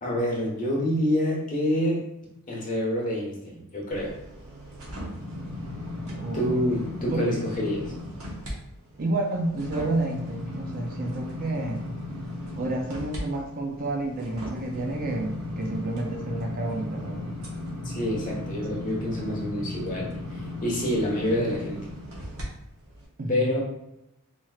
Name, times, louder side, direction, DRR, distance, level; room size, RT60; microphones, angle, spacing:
voice 1, 0.0-2.0 2.5-4.1 6.3-7.9 17.8-21.8 23.3-23.6, equal, 35° left, -3 dB, 1.1 m, -27 dB
sound 1, 3.9-8.5 8.9-22.4 22.9-23.1, left 1 dB, 70° right, 1.1 m, -36 dB
voice 2, 6.1-6.7 7.1-7.2 9.0-11.8 12.6-17.4 23.2-23.4, right 2 dB, 40° right, 2 dB, 0.5 m, -30 dB
4.3 x 3.0 x 2.4 m, 0.85 s
head